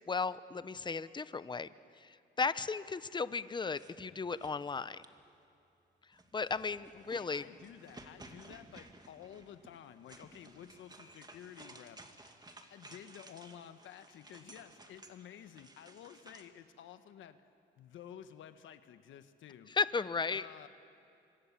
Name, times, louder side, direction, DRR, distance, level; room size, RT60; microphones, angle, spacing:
voice 1, 0.1-1.7 1.9-5.0 6.3-7.4 19.7-20.5, left 4 dB, 25° left, 15 dB, 0.8 m, -35 dB
sound 1, 3.6-5.4 6.1-16.5, right 2 dB, 20° right, 2.2 m, -56 dB
voice 2, 6.9-12.3 12.7-17.4 17.8-19.7 20.3-20.7, left 9 dB, 75° left, 10 dB, 1.2 m, -52 dB
27.0 x 24.5 x 7.4 m, 2.7 s
cardioid pair, 90°, 20 cm